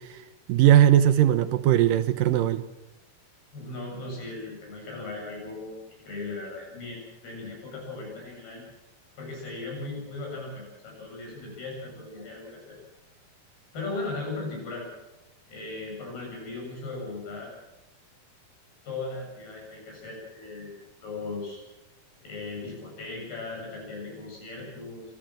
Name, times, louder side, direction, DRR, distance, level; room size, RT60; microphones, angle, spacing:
voice 1, 0.5-2.6, right 11 dB, 75° right, 12 dB, 2.2 m, -19 dB
voice 2, 3.5-8.7 9.2-12.8 13.7-14.9 15.5-17.5 18.8-21.6 22.2-25.0, left 3 dB, 85° left, -1 dB, 10.0 m, -37 dB
25.0 x 15.0 x 7.7 m, 0.96 s
omnidirectional pair, 4.4 m